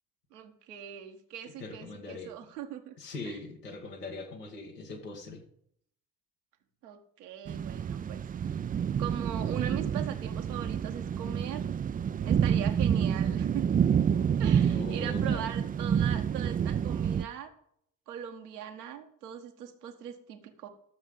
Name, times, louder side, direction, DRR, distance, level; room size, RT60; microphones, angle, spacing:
voice 1, 0.3-2.9 3.2-3.4 6.8-8.2 8.4-8.6 9.0-11.6 12.2-13.6 14.4-17.5 18.1-20.7, right 9 dB, 80° right, 4 dB, 1.4 m, -40 dB
voice 2, 1.4-2.3 3.0-5.4 14.6-15.5, left 3 dB, 85° left, 1 dB, 1.8 m, -41 dB
sound 1, 7.5-17.3, right 8 dB, 20° right, 0.4 m, -28 dB
13.0 x 7.3 x 5.3 m, 0.69 s
figure-of-eight pair, 50°, 46 cm